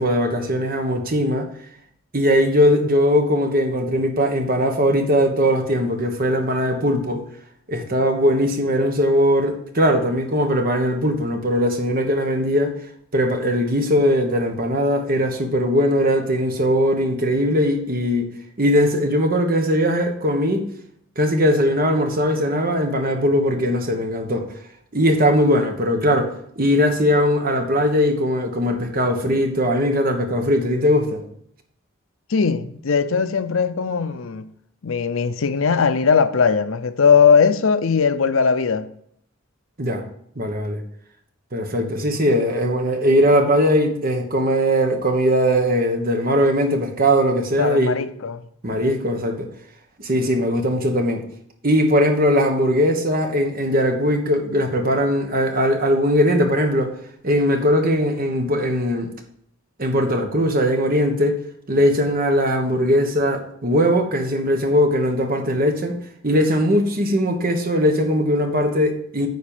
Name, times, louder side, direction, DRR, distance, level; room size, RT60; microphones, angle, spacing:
voice 1, 0.0-1.5 2.1-7.3 7.7-12.7 13.1-18.3 18.6-20.7 21.2-24.5 24.9-31.2 39.8-40.0 40.4-40.8 41.5-48.0 48.6-49.5 50.0-51.2 51.6-56.9 57.2-59.1 59.8-61.4 61.7-66.0 66.2-69.3, equal, 45° right, 1.3 m, -20 dB
voice 2, 32.3-34.4 34.8-38.9 47.6-48.4, left 6 dB, 75° left, 0.6 m, -19 dB
9.4 x 4.3 x 7.2 m
head